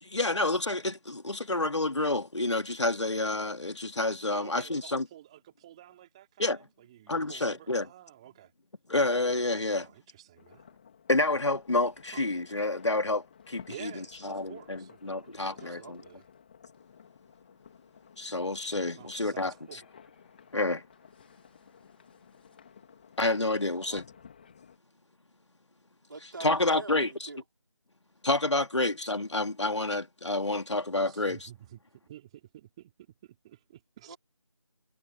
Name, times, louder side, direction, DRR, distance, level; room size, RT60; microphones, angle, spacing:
voice 1, 0.0-5.0 6.4-6.6 7.1-7.9 8.9-9.9 11.1-13.9 14.2-16.0 18.2-19.8 20.5-20.8 23.2-24.0 26.4-27.1 28.2-31.5, left 2 dB, 65° left, 2.8 m, -29 dB
voice 2, 4.3-8.5 9.5-10.7 12.1-12.2 13.7-16.2 19.0-19.8 31.1-34.2, right 13 dB, 10° right, 3.7 m, -51 dB
sound 1, 10.4-24.8, left 7 dB, 20° left, 3.7 m, -55 dB
voice 3, 15.6-16.2 23.7-24.0 26.1-27.4 34.1-34.2, right 3 dB, 40° right, 4.7 m, -46 dB
figure-of-eight pair, 170°, 16 cm